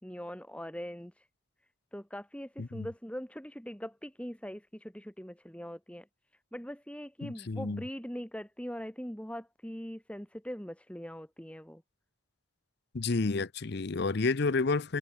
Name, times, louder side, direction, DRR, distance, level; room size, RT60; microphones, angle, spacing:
voice 1, 0.0-1.3 1.9-6.1 6.5-11.8, equal, 5° left, 2.1 m, -42 dB
voice 2, 7.2-7.8 12.9-15.0, left 3 dB, 50° left, 0.6 m, -30 dB
head